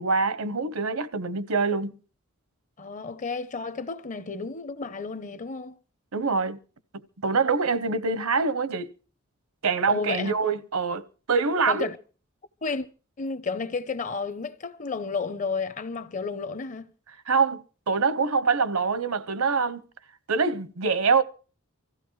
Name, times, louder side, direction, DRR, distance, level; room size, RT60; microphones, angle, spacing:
voice 1, 0.0-2.0 6.1-6.6 7.2-8.9 9.6-11.9 17.3-19.8 20.3-21.2, right 4 dB, 75° right, 0.8 m, -25 dB
voice 2, 2.8-5.8 9.9-10.3 11.7-12.0 12.6-12.9 13.2-16.9, left 4 dB, 35° left, 0.6 m, -32 dB
24.5 x 15.0 x 3.1 m
head